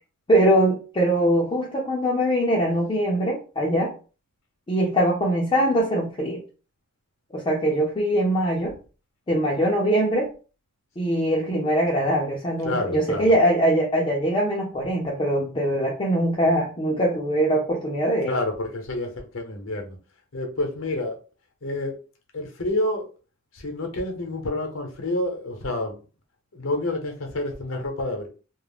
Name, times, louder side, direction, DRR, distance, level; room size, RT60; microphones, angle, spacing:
voice 1, 0.3-3.9 4.7-6.4 7.3-8.7 9.3-10.3 11.0-18.4, right 1 dB, 25° left, 0.5 m, -22 dB
voice 2, 12.6-13.3 18.3-20.0 20.3-21.2 21.6-22.0 22.3-23.1 23.5-26.0 26.5-28.3, left 1 dB, 75° left, 0.7 m, -28 dB
2.3 x 2.0 x 3.3 m
head